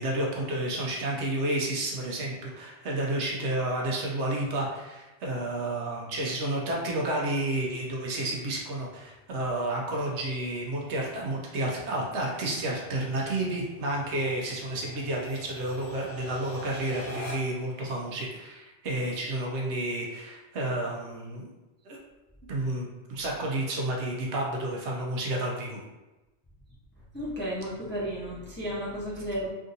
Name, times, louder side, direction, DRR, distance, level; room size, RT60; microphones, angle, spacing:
voice 1, 0.0-21.5 21.9-22.0 22.5-25.8, right 1 dB, 75° right, -2 dB, 1.0 m, -31 dB
sound 1, 7.7-17.7, left 1 dB, 80° left, 1.0 m, -47 dB
voice 2, 27.0-29.5, equal, 10° left, -8 dB, 0.6 m, -33 dB
3.5 x 2.5 x 2.6 m, 1.0 s
omnidirectional pair, 1.2 m